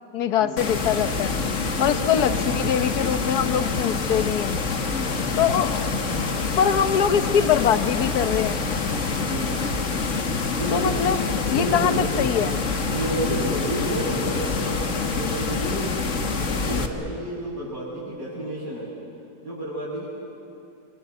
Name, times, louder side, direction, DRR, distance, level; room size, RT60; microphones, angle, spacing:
voice 1, 0.1-1.3 1.8-4.6 5.4-5.9 6.6-8.7 10.7-11.2 11.5-12.6, left 8 dB, 70° left, 10 dB, 1.5 m, -23 dB
sound 1, 0.6-16.9, left 4 dB, 50° left, 1.8 m, -26 dB
voice 2, 4.9-5.3 9.2-9.7 10.6-11.2 11.4-12.1 12.9-14.9 15.1-16.0 16.3-18.9 19.4-20.1, right 1 dB, 55° right, -9 dB, 7.7 m, -30 dB
sound 2, 5.1-11.8, left 1 dB, 25° left, 2.3 m, -43 dB
27.5 x 26.5 x 8.1 m, 2.6 s
omnidirectional pair, 1.8 m